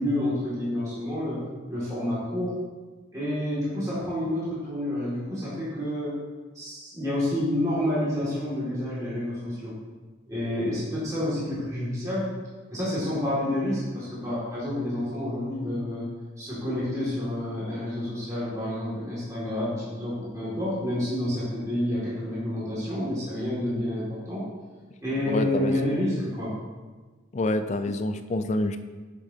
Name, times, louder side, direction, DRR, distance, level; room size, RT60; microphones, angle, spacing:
voice 1, 0.0-2.6 3.1-6.2 6.5-9.8 10.3-12.3 12.7-16.1 16.4-24.5 25.0-26.6, left 1 dB, 15° right, -10 dB, 2.1 m, -29 dB
voice 2, 25.3-25.7 27.3-28.8, left 2 dB, 35° left, 9 dB, 0.3 m, -27 dB
8.2 x 6.8 x 2.8 m, 1.3 s
head